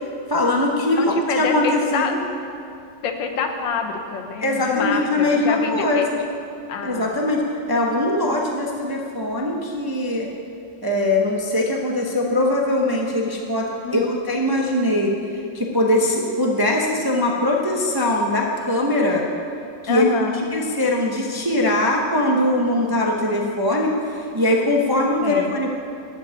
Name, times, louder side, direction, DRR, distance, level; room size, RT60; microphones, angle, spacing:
voice 1, 0.3-2.2 4.4-6.2 6.8-10.3 10.8-15.1 15.5-19.2 19.8-20.0 20.5-25.7, left 1 dB, 25° right, -1 dB, 0.5 m, -21 dB
voice 2, 0.8-2.1 3.0-6.1 6.7-7.3 13.8-14.1 19.9-20.5 25.2-25.5, left 5 dB, 85° left, 5 dB, 1.7 m, -26 dB
12.0 x 5.3 x 8.8 m, 2.5 s
omnidirectional pair, 2.0 m